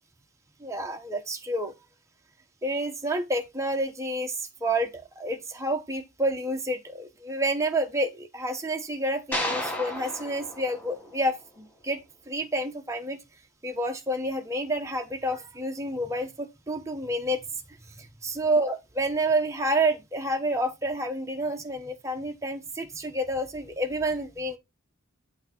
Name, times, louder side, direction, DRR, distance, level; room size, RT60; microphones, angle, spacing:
voice 1, 0.6-1.7 2.6-13.2 13.6-17.4 17.7-24.6, right 1 dB, 15° right, 1.0 m, -29 dB
sound 1, 9.3-11.7, left 1 dB, 10° left, 3.2 m, -33 dB
8.7 x 3.5 x 5.8 m
head